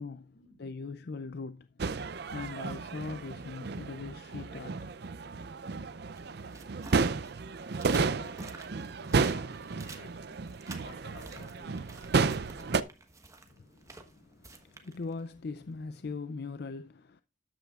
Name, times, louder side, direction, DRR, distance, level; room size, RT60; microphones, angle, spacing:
voice 1, 0.6-1.7 2.3-4.7 13.6-17.2, left 4 dB, 55° left, 0.5 m, -40 dB
sound 1, 1.8-12.8, right 4 dB, 55° right, 0.5 m, -32 dB
sound 2, 6.1-16.1, right 3 dB, 15° right, 1.2 m, -52 dB
voice 2, 7.8-8.7 9.0-10.4 10.8-12.1, left 2 dB, 85° left, 2.5 m, -54 dB
13.0 x 9.0 x 2.4 m
head